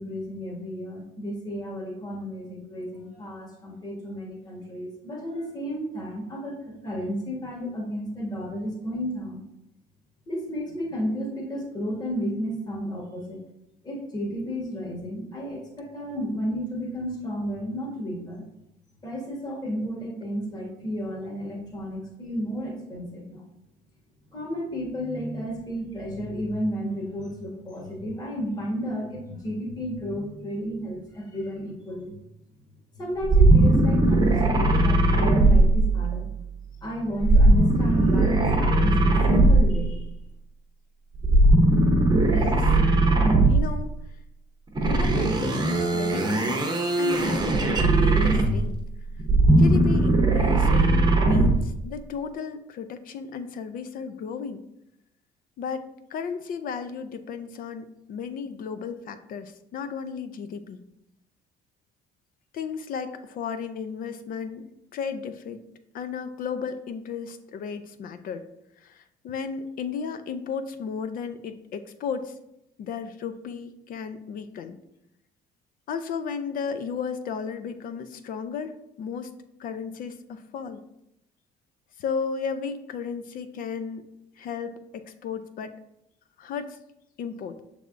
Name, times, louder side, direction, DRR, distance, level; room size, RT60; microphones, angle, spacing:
voice 1, 0.0-6.5 6.8-9.4 10.3-13.4 13.8-18.4 19.0-23.4 24.3-32.1 33.0-36.3 36.8-40.0, equal, 25° left, -2 dB, 1.3 m, -32 dB
sound 1, 33.2-36.3 37.2-39.9 41.2-43.8 44.8-48.7 49.2-51.7, right 2 dB, 25° right, 0.8 m, -19 dB
voice 2, 42.3-42.7 43.5-43.9 44.8-46.7 47.0-48.8 49.6-54.6 55.6-55.9 56.1-60.8 62.5-64.6 64.9-65.6 65.9-68.5 68.8-72.3 72.8-74.8 75.9-79.3 79.6-80.8 82.0-84.0 84.4-85.7 86.4-86.8 87.2-87.6, left 6 dB, 55° left, 11 dB, 0.5 m, -34 dB
6.3 x 3.4 x 2.5 m, 0.82 s
cardioid pair, 110°, 17 cm